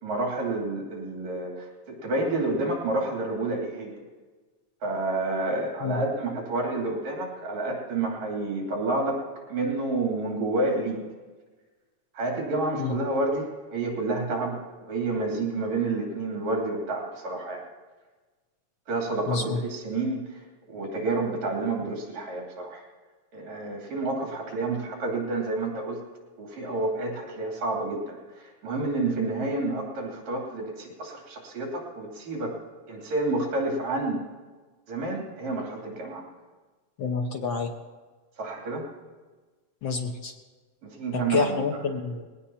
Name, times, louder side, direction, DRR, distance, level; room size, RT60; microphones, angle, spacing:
voice 1, 0.0-4.0 4.8-9.2 9.5-11.0 12.1-14.6 14.9-17.6 18.9-20.4 20.7-22.8 23.3-26.0 26.4-32.6 32.9-34.2 34.9-36.2 38.4-38.9 40.8-41.6, right 2 dB, 70° right, -1 dB, 4.3 m, -29 dB
voice 2, 19.3-19.6 37.0-37.7 39.8-40.3 41.1-42.2, left 5 dB, 70° left, 3 dB, 1.1 m, -28 dB
20.5 x 17.5 x 2.9 m, 1.3 s
omnidirectional pair, 3.3 m